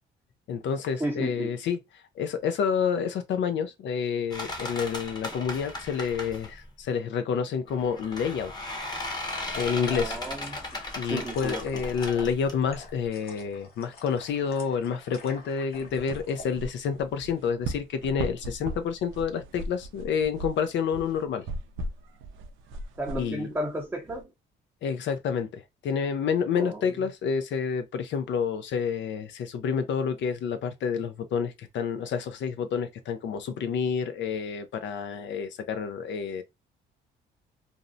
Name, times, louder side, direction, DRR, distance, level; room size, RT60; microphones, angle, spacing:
voice 1, 0.5-1.8 2.2-8.5 9.6-10.2 10.9-21.4 23.1-23.5 24.8-36.4, left 6 dB, 65° left, 0.4 m, -29 dB
voice 2, 1.0-1.6 9.9-10.6 11.1-11.9 23.0-24.3 26.5-26.9, right 1 dB, 10° right, 0.6 m, -33 dB
sound 1, 4.3-6.7 7.7-13.1, left 1 dB, 20° left, 0.8 m, -36 dB
sound 2, 9.1-16.6, left 4 dB, 50° left, 0.9 m, -48 dB
sound 3, 15.7-24.2, right 2 dB, 80° right, 0.5 m, -38 dB
2.6 x 2.0 x 2.5 m
cardioid pair, 90°, 20 cm